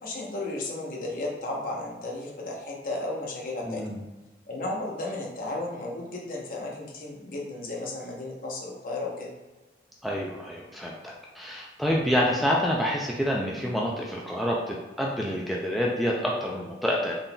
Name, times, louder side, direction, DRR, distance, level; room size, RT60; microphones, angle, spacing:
voice 1, 0.0-3.8 4.5-9.3, left 2 dB, 50° left, -3 dB, 0.8 m, -34 dB
voice 2, 3.6-4.0 10.0-17.1, equal, ahead, -3 dB, 0.3 m, -27 dB
3.8 x 3.7 x 2.2 m, 1.2 s
head